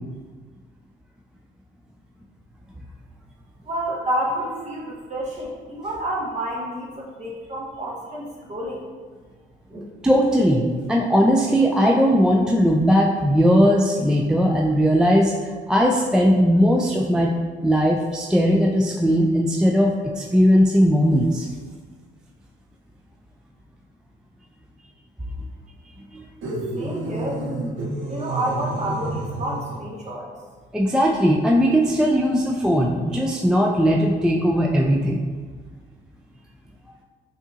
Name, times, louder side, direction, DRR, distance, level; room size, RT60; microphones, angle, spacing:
voice 1, 3.6-8.8 9.7-9.9 26.7-27.5 28.1-30.3, right 1 dB, 35° right, -3 dB, 1.1 m, -29 dB
voice 2, 10.0-15.3 15.7-17.3 17.6-21.5 30.7-35.2, equal, 5° right, -1 dB, 0.3 m, -18 dB
sound 1, 26.4-29.9, right 1 dB, 80° right, 0.8 m, -30 dB
5.5 x 2.8 x 2.4 m, 1.5 s
cardioid pair, 90°, 20 cm